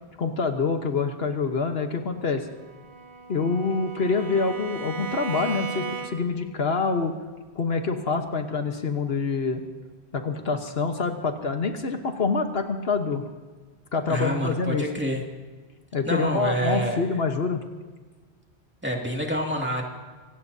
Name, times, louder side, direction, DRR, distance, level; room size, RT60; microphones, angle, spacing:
voice 1, 0.2-2.5 3.3-7.1 7.5-9.6 10.1-13.2 13.9-14.8 15.9-17.6, left 4 dB, 70° left, 5 dB, 1.4 m, -26 dB
Bowed string instrument, 2.6-6.5, right 4 dB, 85° right, 1.3 m, -36 dB
voice 2, 14.1-15.2 16.1-17.0 18.8-19.8, equal, 10° right, -1 dB, 2.3 m, -27 dB
24.5 x 18.0 x 2.8 m, 1.4 s
omnidirectional pair, 1.1 m